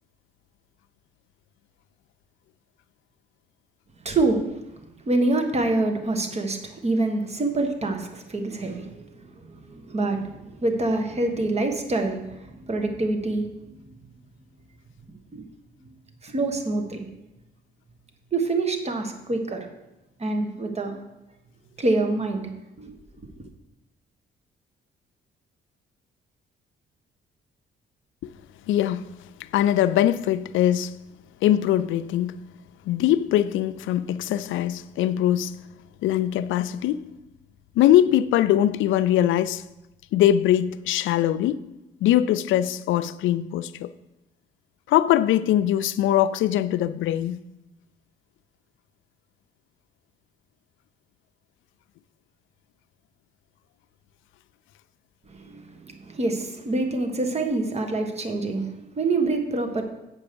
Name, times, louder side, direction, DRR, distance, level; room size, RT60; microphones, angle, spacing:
voice 1, 4.0-4.5 5.0-13.5 15.3-15.4 16.2-17.0 18.3-19.7 20.2-21.0 21.8-22.5 22.8-22.9 23.2-23.3 55.3-59.8, right 2 dB, 30° right, 1.4 m, -26 dB
voice 2, 28.7-29.0 29.5-30.9 31.4-32.4 32.9-35.5 36.0-37.0 37.8-39.6 40.1-41.6 42.0-43.9 44.9-47.4, left 12 dB, 80° left, 0.4 m, -21 dB
8.1 x 5.2 x 6.9 m
cardioid pair, 90°, 20 cm